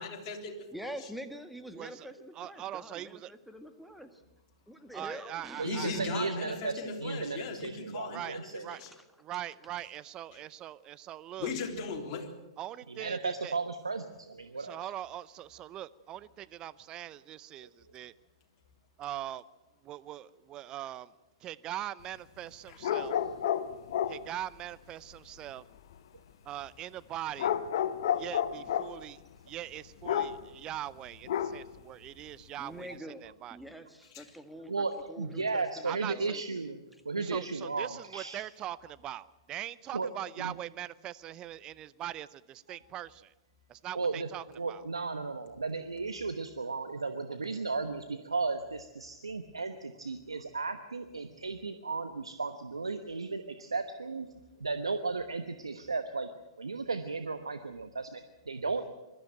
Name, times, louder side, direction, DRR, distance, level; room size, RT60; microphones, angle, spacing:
voice 1, 0.0-0.7 1.0-1.1 5.6-8.9 11.4-12.3 22.7-22.8 34.1-34.3, left 4 dB, 40° left, 2 dB, 3.7 m, -38 dB
voice 2, 0.7-4.2 4.7-5.7 6.3-6.4 8.8-8.9 32.6-33.2 33.5-36.4 37.1-37.4, equal, ahead, 7 dB, 1.7 m, -45 dB
voice 3, 1.7-2.1 2.3-3.3 4.9-6.0 8.1-8.8 9.2-11.5 12.6-13.5 14.6-18.1 19.0-19.4 19.8-21.1 21.4-23.1 24.1-25.6 26.4-27.5 28.1-33.6 35.9-36.3 37.2-43.3 43.7-44.8, right 12 dB, 30° right, 18 dB, 0.6 m, -41 dB
voice 4, 5.6-8.7 12.9-14.9 17.6-17.7 34.7-38.4 39.9-40.1 40.4-40.5 42.7-42.8 43.9-44.3 44.5-54.3 54.6-56.3 56.6-58.9, right 4 dB, 90° right, 9 dB, 1.1 m, -35 dB
sound 1, 22.8-24.3 27.4-29.0 30.0-30.5 31.3-31.8, left 9 dB, 60° left, 1.1 m, -31 dB
22.0 x 13.5 x 9.1 m, 1.1 s
hypercardioid pair, 110°, 3 cm